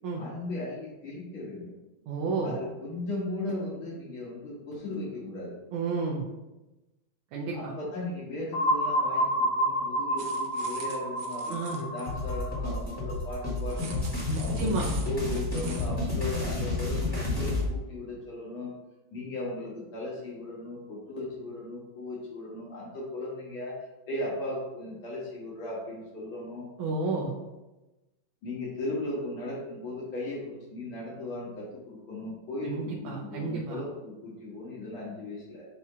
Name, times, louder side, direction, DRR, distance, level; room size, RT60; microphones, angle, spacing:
voice 1, 0.2-1.8 2.4-5.6 7.5-14.0 14.4-18.7 19.1-26.7 28.4-35.7, left 2 dB, 80° left, -6 dB, 2.3 m, -37 dB
voice 2, 2.1-2.5 5.7-6.2 7.3-7.5 11.5-11.8 14.3-14.9 26.8-27.3 32.7-33.8, right 3 dB, 85° right, -2 dB, 1.7 m, -31 dB
sound 1, 8.5-14.2, equal, 65° left, 1.0 m, -30 dB
sound 2, 10.2-12.1 13.6-15.9, right 5 dB, 65° right, 1.3 m, -45 dB
sound 3, 12.0-17.7, left 2 dB, 10° left, 1.5 m, -30 dB
7.2 x 2.9 x 4.8 m, 1.0 s
omnidirectional pair, 2.2 m